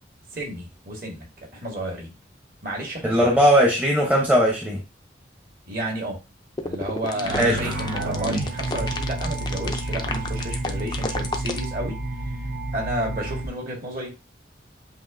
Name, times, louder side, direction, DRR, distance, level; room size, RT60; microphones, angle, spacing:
voice 1, 0.3-1.3 1.5-2.1 2.6-3.3 5.7-6.2 6.6-12.0 12.2-12.4 12.7-14.1, right 1 dB, 50° right, 0 dB, 1.6 m, -31 dB
voice 2, 3.0-4.8 7.4-7.7, equal, 10° right, -1 dB, 0.8 m, -19 dB
sound 1, 6.6-11.6, left 3 dB, 25° left, 0.4 m, -31 dB
sound 2, 7.1-13.5, right 2 dB, 85° right, 0.9 m, -29 dB
7.7 x 2.6 x 2.5 m, 0.27 s
head